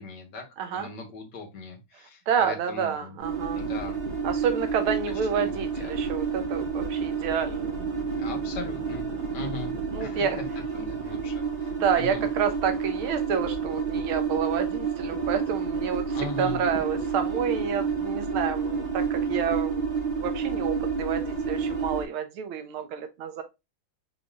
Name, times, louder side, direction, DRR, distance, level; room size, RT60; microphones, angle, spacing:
voice 1, 0.0-0.4 0.7-3.2 3.5-4.0 5.3-6.0 8.2-9.7 10.0-10.5 10.7-12.3 16.1-16.6, left 4 dB, 55° left, 1.8 m, -39 dB
voice 2, 0.6-0.9 2.3-3.6 4.2-7.9 9.9-10.4 11.8-19.8 20.2-23.4, right 7 dB, 80° right, 1.6 m, -29 dB
sound 1, 3.2-22.0, right 5 dB, 50° right, 1.9 m, -30 dB
5.2 x 3.9 x 2.4 m
omnidirectional pair, 2.4 m